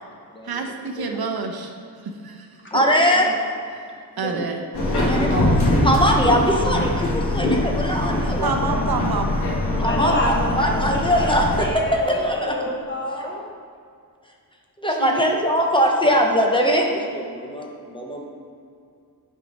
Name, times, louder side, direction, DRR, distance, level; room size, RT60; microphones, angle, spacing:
voice 1, 0.4-1.7 2.0-2.5 3.7-3.9 4.2-4.6 8.4-9.3 15.0-15.4, right 4 dB, 65° right, 3 dB, 0.9 m, -28 dB
voice 2, 2.7-3.4 4.2-4.4 4.8-8.5 9.8-12.7 14.8-18.3, equal, 10° left, 0 dB, 0.9 m, -21 dB
Subway metro underground, 4.7-11.7, left 1 dB, 75° left, 1.7 m, -22 dB
voice 3, 5.1-5.6 9.8-13.5, left 1 dB, 30° left, -1 dB, 1.3 m, -28 dB
9.0 x 4.6 x 5.4 m, 2.3 s
wide cardioid pair, 115°, 39 cm